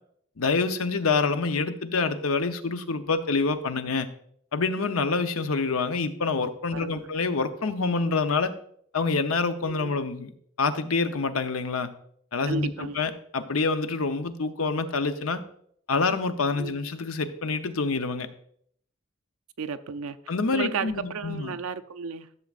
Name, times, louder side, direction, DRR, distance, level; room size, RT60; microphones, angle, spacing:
voice 1, 0.4-4.1 4.5-8.5 8.9-10.3 10.6-11.9 12.3-15.4 15.9-18.3 20.3-21.6, left 4 dB, 80° left, 0.7 m, -26 dB
voice 2, 6.7-7.1 9.6-9.9 12.5-13.1 16.6-16.8 19.6-20.2 20.5-22.3, right 5 dB, 80° right, 0.5 m, -33 dB
14.0 x 7.1 x 2.4 m
head